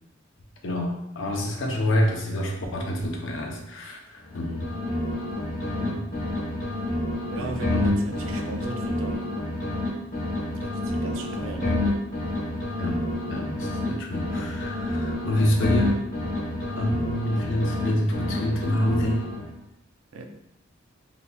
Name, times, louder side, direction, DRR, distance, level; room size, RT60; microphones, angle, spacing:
voice 1, 0.6-4.7 5.8-6.0 7.7-7.9 12.8-13.0 13.3-16.0 16.7-19.2, left 1 dB, 70° left, 1 dB, 0.6 m, -27 dB
sound 1, 4.2-5.9 6.1-9.9 10.1-13.9 14.1-17.9 18.1-19.5, left 1 dB, 40° left, 1.0 m, -29 dB
voice 2, 7.3-9.3 10.5-11.9 20.1-20.2, right 1 dB, 90° right, 5 dB, 0.4 m, -35 dB
3.8 x 2.8 x 2.2 m, 0.89 s
head